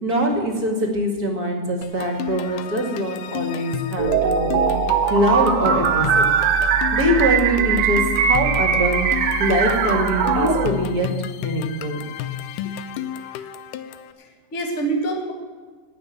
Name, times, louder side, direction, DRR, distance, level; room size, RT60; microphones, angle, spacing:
voice 1, 0.0-4.7 5.1-6.3 6.9-12.0 12.6-12.7, equal, 35° right, 1 dB, 2.1 m, -23 dB
sound 1, 1.8-14.1, left 10 dB, 80° left, 2.0 m, -32 dB
sound 2, 4.0-10.7, right 7 dB, 80° right, 2.6 m, -20 dB
voice 2, 13.2-13.5 14.2-15.3, right 3 dB, 25° left, 1 dB, 1.7 m, -27 dB
17.5 x 6.1 x 9.2 m, 1.5 s
omnidirectional pair, 3.7 m